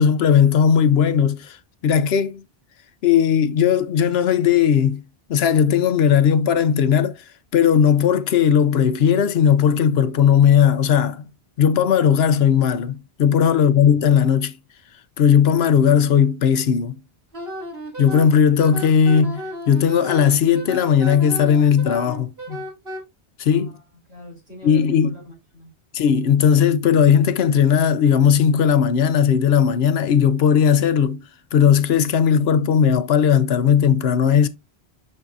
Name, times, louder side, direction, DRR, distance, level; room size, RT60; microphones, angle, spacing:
voice 1, 0.0-1.6 1.8-2.4 3.0-5.0 5.3-7.2 7.5-11.2 11.6-14.6 15.2-17.0 18.0-22.6 23.4-23.7 24.6-25.1 25.9-31.2 31.5-34.5, left 8 dB, 75° left, 0.9 m, -17 dB
Wind instrument woodwind instrument, 17.3-23.0, equal, 65° right, 3.0 m, -33 dB
voice 2, 23.5-25.7, equal, 85° right, 4.7 m, -43 dB
10.5 x 3.7 x 2.6 m
omnidirectional pair, 1.1 m